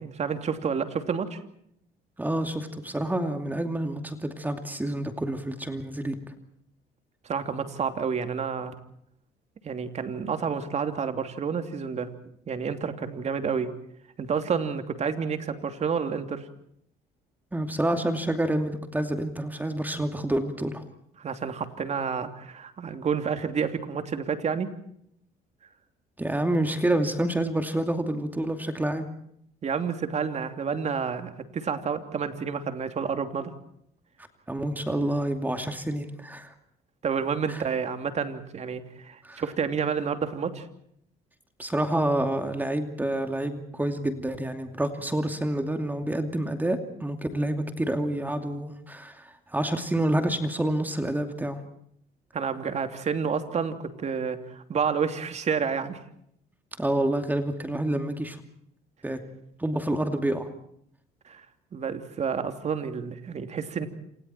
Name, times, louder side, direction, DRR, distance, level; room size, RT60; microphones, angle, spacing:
voice 1, 0.0-1.4 7.2-8.7 9.6-12.1 12.5-13.7 14.2-16.5 21.2-24.7 29.6-33.5 37.0-40.7 52.3-56.0 61.2-61.4 61.7-63.9, right 6 dB, 40° right, 7 dB, 3.0 m, -29 dB
voice 2, 2.2-6.2 17.5-20.8 26.2-29.1 34.5-36.5 37.5-37.6 39.2-39.4 41.6-51.6 56.8-58.4 59.0-59.2 59.6-60.5, right 1 dB, 10° right, 6 dB, 2.6 m, -28 dB
28.5 x 27.0 x 4.5 m, 0.71 s
cardioid pair, 110°, 17 cm